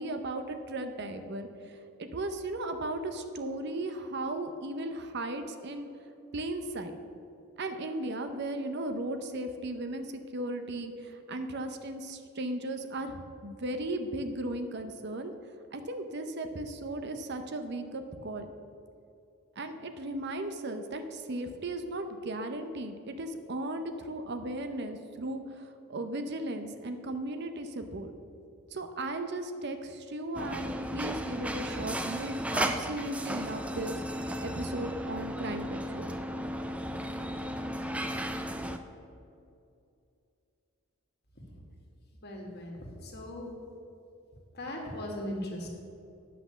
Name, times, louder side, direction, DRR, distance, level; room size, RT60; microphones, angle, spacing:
voice 1, 0.0-5.9 6.3-7.0 7.6-15.3 15.7-18.5 19.6-28.1 28.7-34.0 34.4-36.1, right 1 dB, 50° right, 7 dB, 0.7 m, -36 dB
sound 1, 30.3-38.8, equal, 5° right, 0.4 m, -35 dB
voice 2, 42.2-43.5 44.5-45.7, left 1 dB, 50° left, 0 dB, 1.8 m, -38 dB
10.5 x 5.9 x 7.0 m, 2.6 s
head